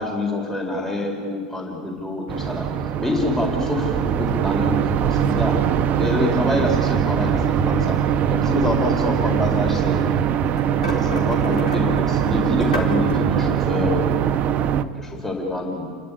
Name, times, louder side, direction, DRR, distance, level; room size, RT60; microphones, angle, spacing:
voice 1, 0.0-2.7 3.0-5.6 6.0-8.0 8.3-10.2 10.9-14.2 14.9-15.9, left 2 dB, 10° left, 0 dB, 4.1 m, -26 dB
sound 1, 2.3-14.8, right 9 dB, 40° right, 1.0 m, -21 dB
sound 2, 9.2-10.1 10.5-13.0, left 1 dB, 80° left, 4.6 m, -32 dB
29.0 x 13.5 x 9.8 m, 2.2 s
figure-of-eight pair, 85°, 4 cm